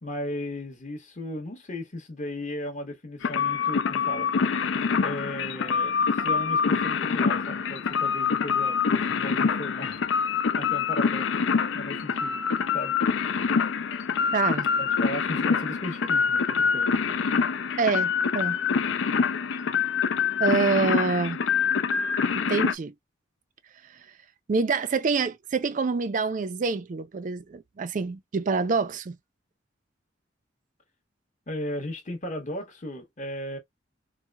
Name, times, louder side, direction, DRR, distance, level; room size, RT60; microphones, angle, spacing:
voice 1, 0.0-4.8 5.0-10.0 10.4-11.3 11.7-12.4 12.7-12.9 14.8-17.0 31.5-33.6, left 1 dB, 40° left, 1.1 m, -36 dB
sound 1, 3.2-22.7, left 6 dB, 90° left, 0.5 m, -25 dB
voice 2, 14.3-14.7 17.8-18.6 20.4-21.4 22.3-22.9 24.5-29.2, right 4 dB, 45° right, 0.4 m, -26 dB
4.6 x 2.1 x 2.2 m
head